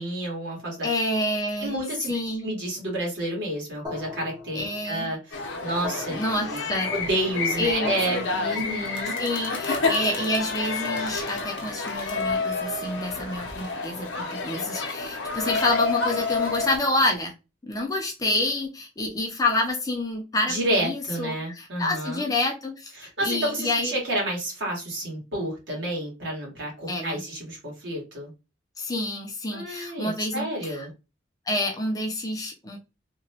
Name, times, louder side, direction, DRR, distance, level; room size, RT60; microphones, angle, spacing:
voice 1, 0.0-0.9 1.6-2.1 2.4-6.6 6.9-9.2 20.5-22.3 23.0-28.3 29.5-30.9, right 1 dB, 65° right, -2 dB, 1.5 m, -30 dB
voice 2, 0.8-1.7 2.1-2.5 4.5-5.1 6.1-6.9 7.6-7.9 9.2-17.3 17.6-22.9 23.2-23.9 26.9-27.2 28.8-30.9 31.5-32.8, left 2 dB, 20° left, 0 dB, 0.5 m, -28 dB
sound 1, 3.8-11.6, left 3 dB, 20° right, 0.7 m, -40 dB
sound 2, 5.3-16.8, left 3 dB, 65° left, 0.7 m, -29 dB
2.9 x 2.2 x 2.8 m, 0.28 s
head